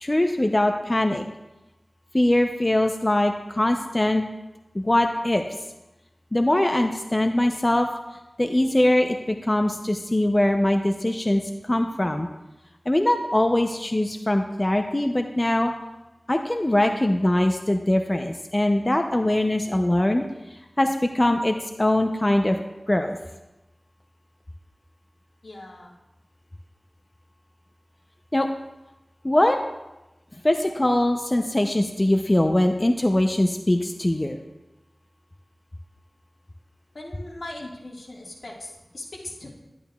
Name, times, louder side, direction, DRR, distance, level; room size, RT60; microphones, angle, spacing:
voice 1, 0.0-1.3 2.1-4.2 4.7-5.4 6.3-7.9 8.4-12.3 12.9-15.7 16.3-20.2 20.5-22.6 22.9-23.2 28.3-28.5 29.2-29.6 30.4-34.4, left 1 dB, 30° left, 5 dB, 0.6 m, -22 dB
voice 2, 25.4-25.9 36.9-39.5, left 2 dB, 80° left, -2 dB, 1.7 m, -39 dB
11.0 x 11.0 x 2.3 m, 1.0 s
wide cardioid pair, 50°, 0 cm